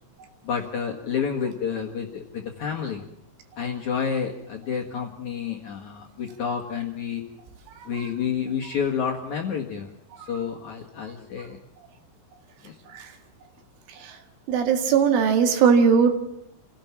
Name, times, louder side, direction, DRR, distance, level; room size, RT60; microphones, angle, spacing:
voice 1, 0.4-3.0 3.6-7.2 7.9-9.9 10.3-11.6 12.6-12.7, left 7 dB, 60° left, 0 dB, 2.1 m, -29 dB
voice 2, 14.5-16.1, right 6 dB, 70° right, 6 dB, 4.4 m, -20 dB
28.5 x 17.0 x 7.3 m, 0.79 s
omnidirectional pair, 5.9 m